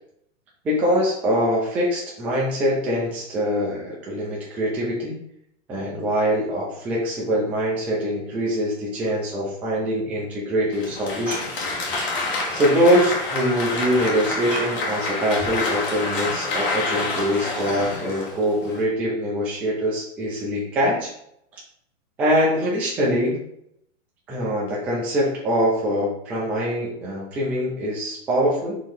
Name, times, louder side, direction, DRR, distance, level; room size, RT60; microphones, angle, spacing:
voice 1, 0.6-5.2 5.7-11.5 11.9-12.0 12.5-21.1 22.2-23.4 24.3-28.8, equal, 5° right, -5 dB, 0.3 m, -23 dB
Applause, 10.7-18.8, left 3 dB, 45° left, 1.4 m, -27 dB
4.5 x 3.0 x 3.6 m, 0.73 s
hypercardioid pair, 145°, 37 cm